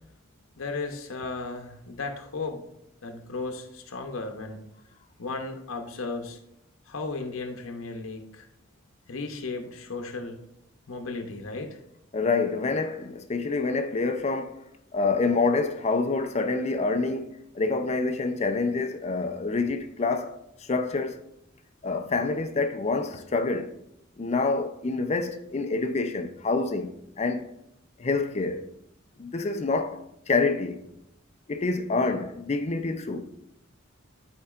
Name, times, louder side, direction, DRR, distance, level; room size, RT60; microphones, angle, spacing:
voice 1, 0.6-2.6 3.0-4.6 5.2-6.4 6.9-8.5 9.1-10.4 10.9-11.8, left 3 dB, 85° left, 0.8 m, -35 dB
voice 2, 12.1-14.6 14.9-21.2 21.8-23.7 24.2-27.5 28.0-28.7 29.2-30.8 31.5-33.3, left 3 dB, 35° left, 0.5 m, -27 dB
11.5 x 4.5 x 2.4 m
head